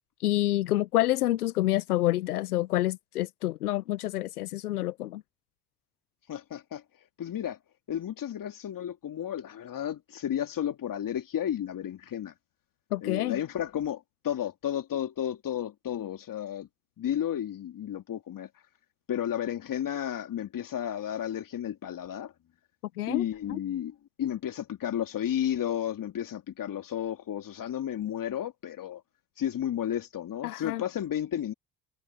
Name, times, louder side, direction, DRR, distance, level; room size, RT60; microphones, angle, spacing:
voice 1, 0.2-5.2 12.9-13.4 23.0-23.2 23.5-23.6 30.4-30.8, left 15 dB, 85° left, 1.1 m, -28 dB
voice 2, 6.3-6.8 7.2-7.6 7.9-12.3 13.0-16.7 17.0-18.5 19.1-22.3 23.1-29.0 29.4-31.5, left 10 dB, 45° left, 2.7 m, -32 dB
hypercardioid pair, 55°, 44 cm